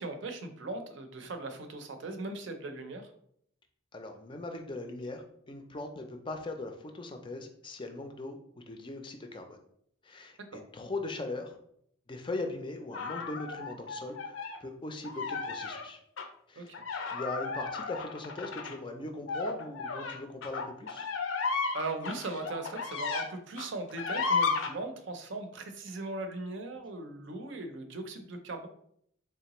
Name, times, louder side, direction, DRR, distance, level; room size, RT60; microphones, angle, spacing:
voice 1, 0.0-3.1 10.5-10.7 16.6-16.7 21.7-28.7, right 2 dB, 70° right, 6 dB, 0.5 m, -39 dB
voice 2, 3.9-8.4 8.7-9.6 10.0-11.6 12.1-16.0 16.5-16.8 17.1-21.1, left 2 dB, 25° left, 5 dB, 0.4 m, -40 dB
sound 1, 12.9-14.6 15.0-15.8 16.2-16.3 16.7-23.3 23.6-24.7, left 4 dB, 85° left, 0.6 m, -34 dB
3.8 x 3.2 x 2.9 m, 0.68 s
head